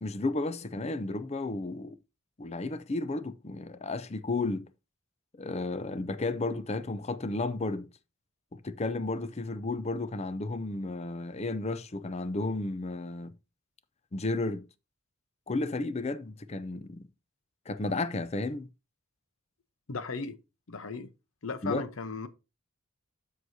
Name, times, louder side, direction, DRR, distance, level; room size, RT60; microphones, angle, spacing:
voice 1, 0.0-2.0 2.4-4.7 5.4-7.9 8.5-13.3 14.1-14.6 15.5-17.1 17.7-18.7 21.6-21.8, left 2 dB, 30° left, 0.5 m, -33 dB
voice 2, 19.9-20.4 20.7-21.1 21.4-22.3, left 4 dB, 70° left, 0.8 m, -36 dB
12.5 x 4.8 x 2.7 m
head